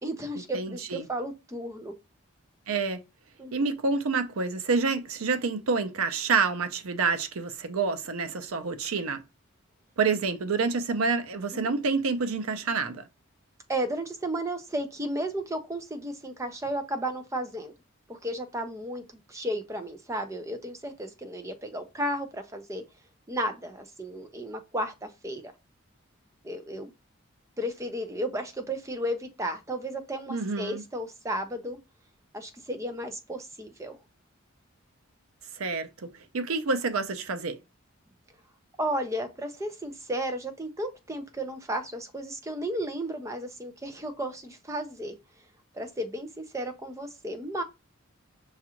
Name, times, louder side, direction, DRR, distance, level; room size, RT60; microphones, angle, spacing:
voice 1, 0.0-1.9 3.4-3.7 11.5-11.7 13.7-17.7 18.1-19.0 19.3-22.8 23.3-25.5 26.4-26.9 27.6-31.8 32.3-34.0 38.8-45.2 45.7-47.6, right 1 dB, 15° right, 0.5 m, -33 dB
voice 2, 0.5-1.1 2.7-3.0 3.5-9.2 10.0-13.0 30.3-30.8 35.5-37.6, right 4 dB, 85° right, 0.6 m, -28 dB
5.9 x 2.4 x 2.9 m
head